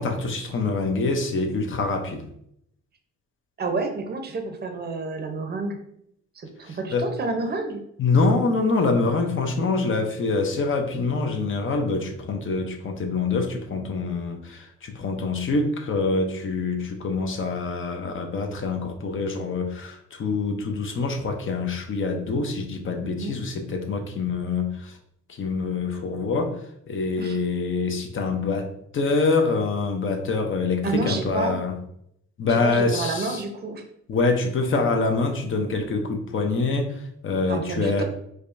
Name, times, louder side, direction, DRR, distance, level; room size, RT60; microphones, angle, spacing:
voice 1, 0.0-2.2 6.6-7.1 8.0-25.0 25.3-31.8 32.4-33.4 34.1-38.0, left 3 dB, 40° left, 4 dB, 0.7 m, -25 dB
voice 2, 3.6-5.8 6.4-7.8 23.0-23.3 27.2-27.4 30.8-31.6 32.5-33.8 37.5-38.0, right 3 dB, 35° right, 5 dB, 0.7 m, -29 dB
4.9 x 2.2 x 2.6 m, 0.72 s
cardioid pair, 90°, 30 cm